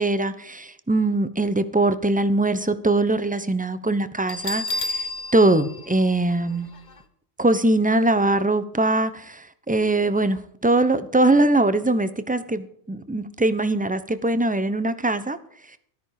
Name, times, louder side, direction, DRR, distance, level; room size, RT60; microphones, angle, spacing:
voice 1, 0.0-5.1 5.3-6.7 7.4-15.4, right 2 dB, 10° right, 12 dB, 0.8 m, -22 dB
Bell, 4.3-7.0, left 2 dB, 40° left, 1.2 m, -31 dB
13.5 x 13.0 x 4.9 m, 0.66 s
omnidirectional pair, 1.3 m